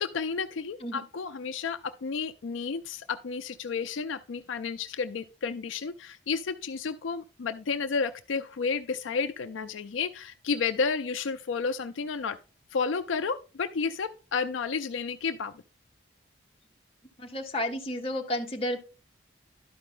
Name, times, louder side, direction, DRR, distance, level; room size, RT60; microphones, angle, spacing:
voice 1, 0.0-12.4 12.7-15.5, left 5 dB, 75° left, 0.4 m, -31 dB
voice 2, 17.2-18.8, left 1 dB, 30° left, 1.0 m, -32 dB
11.5 x 4.9 x 3.7 m
head